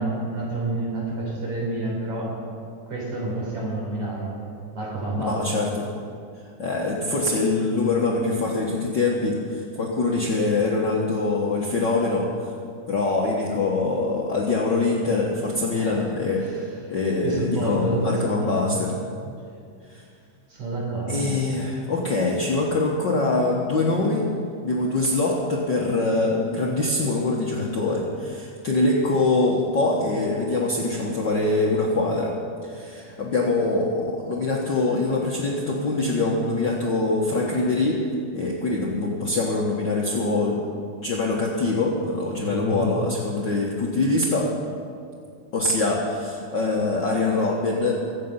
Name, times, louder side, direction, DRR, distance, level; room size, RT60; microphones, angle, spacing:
voice 1, 0.0-2.4 2.9-4.4 4.7-5.6 15.7-16.9 17.2-18.9 20.5-21.3 42.4-42.9, right 2 dB, 65° right, -3 dB, 5.3 m, -29 dB
voice 2, 5.2-5.9 6.6-12.3 12.9-16.6 16.9-19.0 19.9-20.0 21.1-24.3 24.6-32.3 32.6-38.0 38.3-40.6 41.0-44.5 45.5-48.0, left 2 dB, 55° left, -3 dB, 1.3 m, -24 dB
23.5 x 8.1 x 5.6 m, 2.3 s
omnidirectional pair, 3.5 m